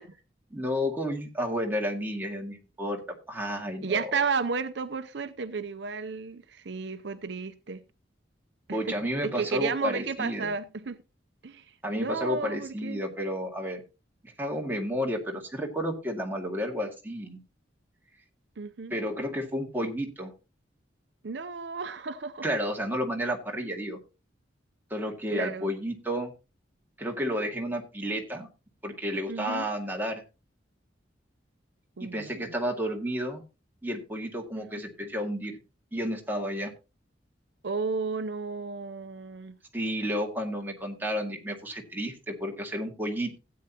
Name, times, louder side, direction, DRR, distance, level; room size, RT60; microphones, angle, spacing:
voice 1, 0.5-3.0 3.3-4.1 8.7-10.5 11.8-13.8 14.2-17.4 18.9-20.3 22.4-24.0 24.9-26.3 27.0-28.5 28.8-30.2 32.0-33.4 33.8-35.6 35.9-36.7 39.7-43.4, equal, 10° right, 2.1 m, -31 dB
voice 2, 3.8-7.8 8.7-9.0 9.2-11.0 11.4-13.0 18.6-19.0 21.2-22.5 23.6-23.7 25.3-25.7 29.3-29.7 32.0-32.5 34.6-34.7 37.6-39.6, right 5 dB, 65° right, 0.6 m, -33 dB
16.0 x 8.7 x 2.9 m
head